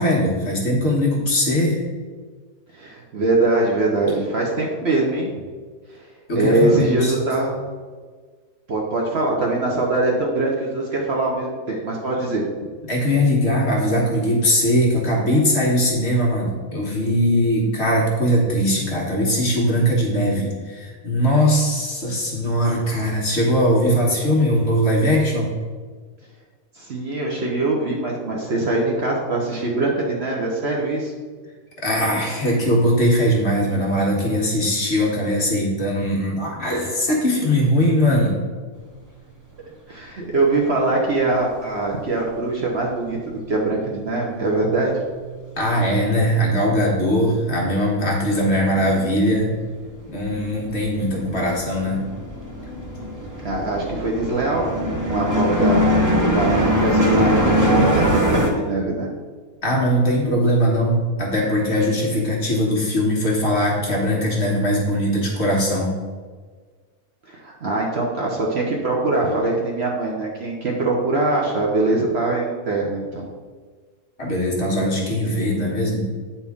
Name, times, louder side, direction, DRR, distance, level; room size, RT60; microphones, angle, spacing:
voice 1, 0.0-1.8 6.3-7.1 12.8-25.5 31.8-38.4 45.6-49.5 50.1-52.0 59.6-65.9 74.2-76.0, equal, 45° left, -2 dB, 1.4 m, -20 dB
voice 2, 2.7-5.4 5.9-6.0 6.3-7.5 8.7-12.4 26.8-31.1 39.9-44.9 53.4-55.8 56.3-59.1 67.3-73.3, right 2 dB, 50° right, -2 dB, 1.0 m, -22 dB
sound 1, 45.6-45.7 45.9-47.1 47.4-58.5, equal, 25° right, 0.4 m, -22 dB
8.7 x 4.4 x 3.5 m, 1.5 s
omnidirectional pair, 1.6 m